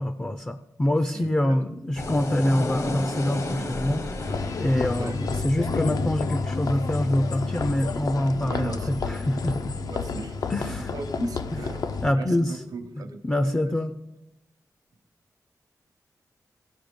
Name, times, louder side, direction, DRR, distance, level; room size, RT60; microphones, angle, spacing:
voice 1, 0.0-9.8 10.5-10.9 11.2-11.6 12.0-12.6 13.2-13.9, left 1 dB, 15° left, 11 dB, 0.4 m, -26 dB
voice 2, 1.0-1.6 5.0-5.3 8.4-9.0 9.8-10.4 10.7-11.8 12.1-13.7, right 4 dB, 75° right, 5 dB, 0.9 m, -38 dB
sound 1, 2.0-8.1, left 2 dB, 55° left, 1.0 m, -34 dB
sound 2, 4.2-12.1, left 4 dB, 75° left, 0.6 m, -30 dB
15.5 x 5.5 x 5.2 m, 0.96 s
wide cardioid pair, 135°, 6 cm